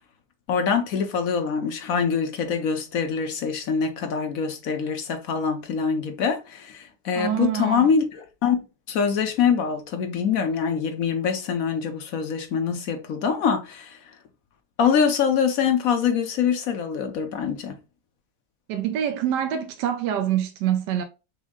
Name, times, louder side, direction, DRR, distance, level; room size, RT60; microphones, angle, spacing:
voice 1, 0.5-14.0 14.8-17.7, left 6 dB, 60° left, 1.1 m, -24 dB
voice 2, 7.2-7.9 18.7-21.0, right 10 dB, 75° right, 1.2 m, -25 dB
6.2 x 2.1 x 3.6 m
omnidirectional pair, 1.9 m